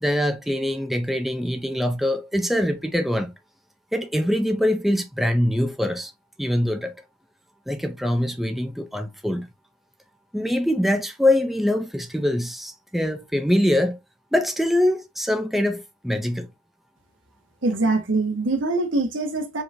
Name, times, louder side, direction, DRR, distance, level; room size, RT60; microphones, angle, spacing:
voice 1, 0.0-3.3 3.9-6.1 6.4-7.0 7.7-9.5 10.3-14.0 14.3-16.5, left 1 dB, ahead, 0.5 m, -23 dB
voice 2, 17.6-19.6, right 2 dB, 90° right, 1.4 m, -23 dB
5.0 x 3.7 x 2.7 m
head